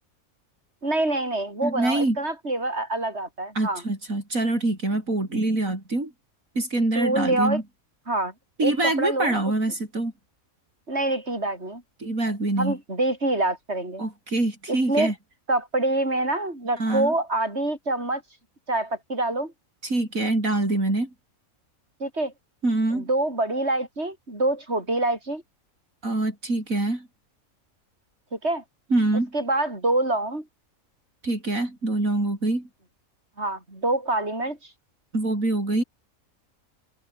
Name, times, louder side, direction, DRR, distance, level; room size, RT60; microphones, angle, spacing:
voice 1, 0.8-3.8 7.0-7.6 8.1-8.3 8.6-9.4 10.9-11.8 12.6-14.0 14.7-15.1 15.5-18.2 18.7-19.5 22.0-22.3 22.9-25.4 28.3-28.6 29.3-30.4 33.4-34.6, right 2 dB, 50° right, 7.3 m, -26 dB
voice 2, 1.6-2.2 3.5-6.1 6.6-7.6 8.6-10.1 12.0-12.8 14.0-15.1 16.8-17.1 19.8-21.1 22.6-23.1 26.0-27.1 28.9-29.3 31.2-32.7 35.1-35.8, right 2 dB, 70° right, 6.3 m, -25 dB
omnidirectional pair, 1.5 m